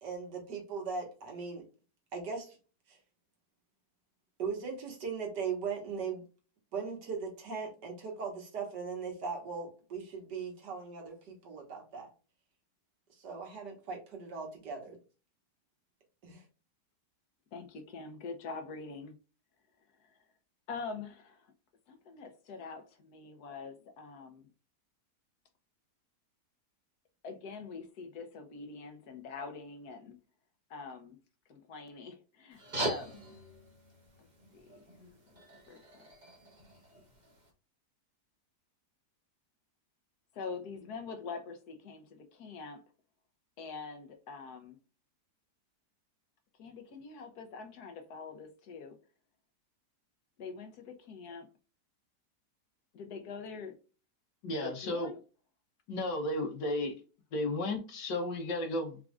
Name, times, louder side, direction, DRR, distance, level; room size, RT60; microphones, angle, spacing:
voice 1, 0.0-1.7 2.1-2.6 2.9-3.0 4.4-6.2 6.7-12.1 13.2-15.0 16.2-16.4, right 5 dB, 85° right, 2.1 m, -39 dB
voice 2, 17.5-19.1 20.0-20.2 20.7-21.5 21.9-24.5 27.2-30.2 30.7-31.2 31.5-33.2 34.2-34.3 34.5-34.9 35.3-36.1 40.3-42.8 43.6-44.8 46.6-49.0 50.4-51.5 52.9-53.8 54.6-55.2, left 4 dB, 70° left, 1.4 m, -44 dB
sound 1, 32.5-37.5, right 1 dB, 30° right, 1.2 m, -42 dB
voice 3, 54.4-55.1 55.9-56.9 57.3-59.0, left 1 dB, 90° left, 1.8 m, -33 dB
4.9 x 3.6 x 2.4 m
omnidirectional pair, 1.8 m